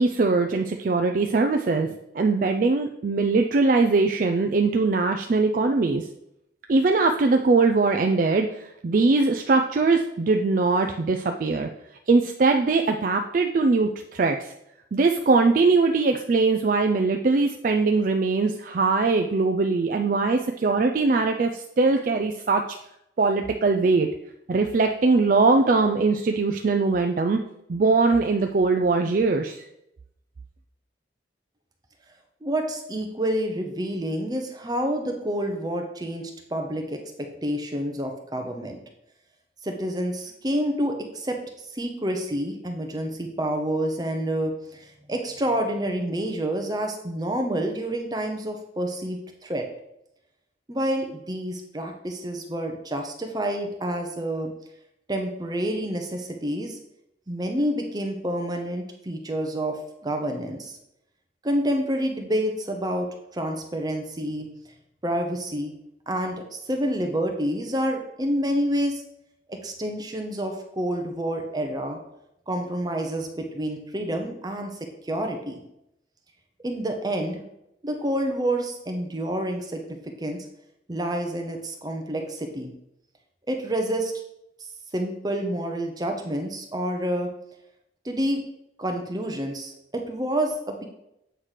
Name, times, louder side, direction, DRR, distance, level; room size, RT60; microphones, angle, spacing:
voice 1, 0.0-1.9 2.1-6.1 6.7-11.7 12.1-14.5 14.9-22.6 23.2-24.1 24.5-27.4 27.7-29.6, right 3 dB, 45° right, 4 dB, 0.4 m, -21 dB
voice 2, 32.4-37.0 37.4-38.8 39.6-49.6 50.7-54.5 55.1-56.8 57.3-60.8 61.4-64.5 65.0-65.7 66.1-69.0 69.5-72.0 72.5-74.7 75.0-75.6 76.6-77.4 77.8-80.5 80.9-82.7 83.5-84.1 84.9-87.3 88.0-88.4 88.8-90.8, right 1 dB, 20° right, 3 dB, 0.7 m, -28 dB
8.0 x 3.2 x 5.7 m, 0.81 s
head